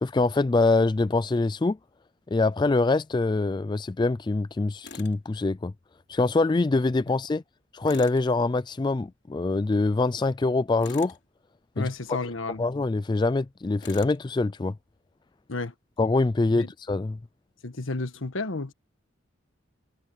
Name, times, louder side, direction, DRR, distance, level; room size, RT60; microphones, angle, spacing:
voice 1, 0.0-1.8 2.3-5.7 6.1-7.4 7.7-11.2 11.8-11.9 12.6-14.7 16.0-17.2, left 3 dB, 20° left, 0.3 m, -24 dB
Tools, 4.8-5.2 7.8-8.3 10.8-11.2 13.8-14.2, left 5 dB, 60° left, 3.1 m, -44 dB
voice 2, 11.7-12.6 15.5-15.7 16.6-16.7 17.6-18.7, left 3 dB, 75° left, 1.4 m, -32 dB
head